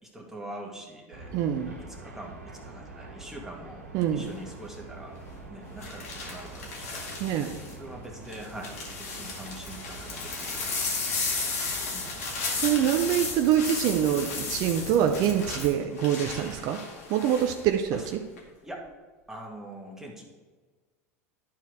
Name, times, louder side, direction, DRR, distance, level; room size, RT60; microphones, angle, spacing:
voice 1, 0.0-1.4 2.0-3.8 4.1-5.1 5.5-7.1 7.8-12.1 17.9-18.1 18.6-18.9 19.3-20.2, right 1 dB, 5° right, -1 dB, 1.9 m, -44 dB
sound 1, 1.1-15.6, right 2 dB, 90° right, 2.2 m, -45 dB
voice 2, 1.3-1.8 3.9-4.3 7.2-7.6 12.5-16.8 17.1-18.2, right 10 dB, 55° right, 6 dB, 0.6 m, -25 dB
sound 2, 4.2-4.5 5.8-7.7 8.3-17.6 17.9-18.4, left 4 dB, 80° left, 2.2 m, -34 dB
11.5 x 4.6 x 4.7 m, 1.3 s
hypercardioid pair, 85°, 8 cm